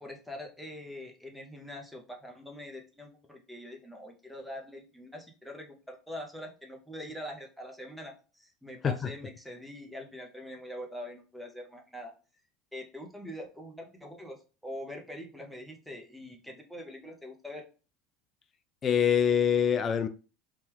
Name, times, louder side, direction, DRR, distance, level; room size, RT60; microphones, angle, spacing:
voice 1, 0.0-12.1 12.7-17.7, equal, ahead, 1 dB, 0.7 m, -43 dB
voice 2, 18.8-20.1, left 8 dB, 30° left, 9 dB, 0.3 m, -24 dB
2.8 x 2.2 x 3.4 m, 0.35 s
hypercardioid pair, 80°, 0 cm